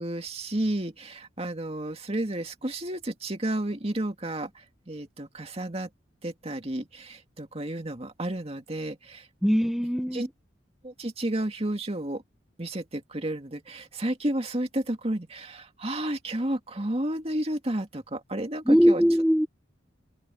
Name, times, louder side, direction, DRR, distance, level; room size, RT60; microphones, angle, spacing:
voice 1, 0.0-5.9 6.2-9.3 10.1-10.3 10.8-12.2 12.6-19.0, right 1 dB, 35° right, 2.2 m, -31 dB
voice 2, 9.4-10.3 18.7-19.5, equal, ahead, 1.3 m, -21 dB
open air
head